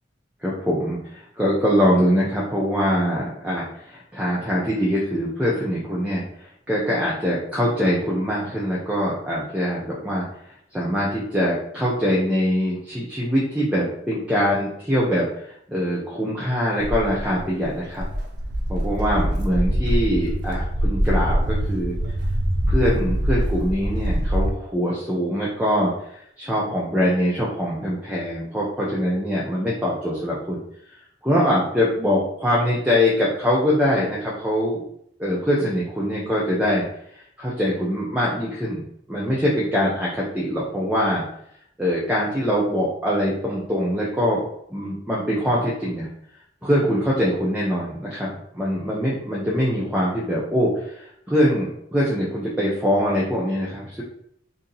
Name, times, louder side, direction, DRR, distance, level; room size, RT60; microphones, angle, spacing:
voice 1, 0.4-6.2 6.7-10.2 10.7-18.1 18.7-21.9 22.7-30.6 31.2-34.8 35.2-36.8 37.4-41.2 41.8-44.4 44.7-46.1 46.6-54.0, equal, 10° right, -5 dB, 0.5 m, -23 dB
Walk footsteps, 16.8-24.5, equal, 65° right, 0.6 m, -24 dB
2.8 x 2.6 x 3.8 m, 0.70 s
head